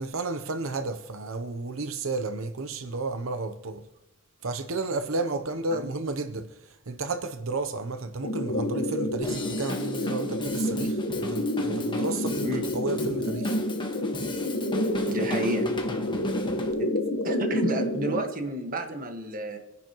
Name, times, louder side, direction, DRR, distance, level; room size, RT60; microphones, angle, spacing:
voice 1, 0.0-3.8 4.4-13.6, right 3 dB, 85° right, 0.8 m, -32 dB
sound 1, 8.2-18.2, left 1 dB, 70° left, 1.4 m, -29 dB
Drum kit / Drum, 9.2-16.7, left 1 dB, 25° left, 1.3 m, -36 dB
voice 2, 15.1-15.7 16.8-16.9 17.2-19.6, right 1 dB, 45° right, 1.7 m, -31 dB
26.0 x 10.5 x 3.1 m
head